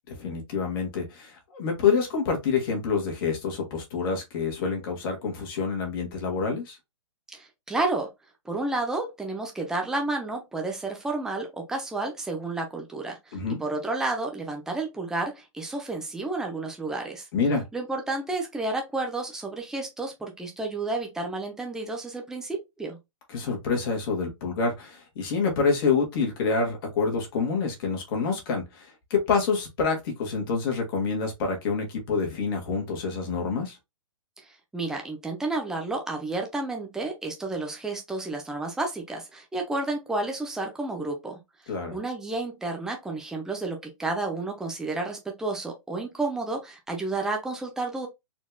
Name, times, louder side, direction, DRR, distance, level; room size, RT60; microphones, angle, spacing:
voice 1, 0.2-6.8 13.3-13.6 17.3-17.6 23.3-33.8 41.7-42.0, left 5 dB, 45° left, 1.7 m, -27 dB
voice 2, 7.3-8.1 8.4-17.3 17.7-23.0 34.7-41.4 41.9-48.1, right 2 dB, 5° right, 0.7 m, -31 dB
4.3 x 2.8 x 2.3 m
hypercardioid pair, 145°, 17 cm